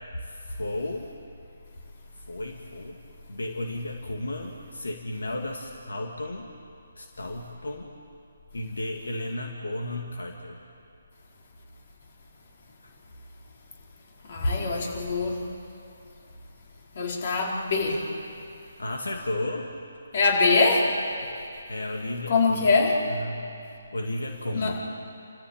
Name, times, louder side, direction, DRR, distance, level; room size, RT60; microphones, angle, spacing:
voice 1, 0.2-1.1 2.3-3.0 3.3-6.5 7.0-7.9 8.5-10.6 12.8-12.9 14.6-15.0 18.8-19.7 21.7-22.8 23.1-23.4 23.9-24.8, left 1 dB, 85° left, 2 dB, 2.3 m, -33 dB
voice 2, 14.2-15.4 16.9-18.0 20.1-20.9 22.3-23.0 24.5-24.8, left 3 dB, 50° left, -1 dB, 4.6 m, -23 dB
28.5 x 14.5 x 8.9 m, 2.6 s
hypercardioid pair, 155°, 0 cm